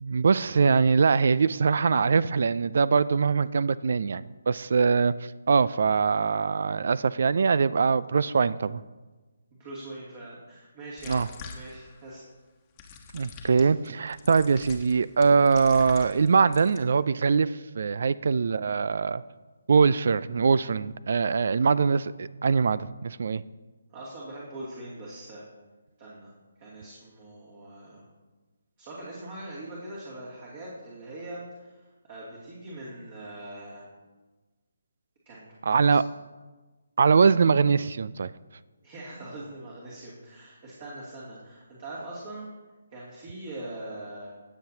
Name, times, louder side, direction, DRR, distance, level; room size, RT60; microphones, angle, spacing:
voice 1, 0.0-8.8 11.1-11.3 13.1-19.2 19.7-23.4 35.6-36.0 37.0-38.3, right 5 dB, 55° right, 18 dB, 0.3 m, -23 dB
voice 2, 9.6-11.2 11.5-12.2 23.9-25.4 26.0-26.3 26.6-28.0 28.8-31.4 31.7-33.9 35.3-36.0 38.8-42.5 42.9-44.3, right 1 dB, 35° right, -6 dB, 2.6 m, -42 dB
sound 1, 11.0-12.1 12.8-16.8, left 5 dB, 20° left, 1.2 m, -45 dB
19.0 x 7.2 x 2.8 m, 1.2 s
figure-of-eight pair, 145°, 0 cm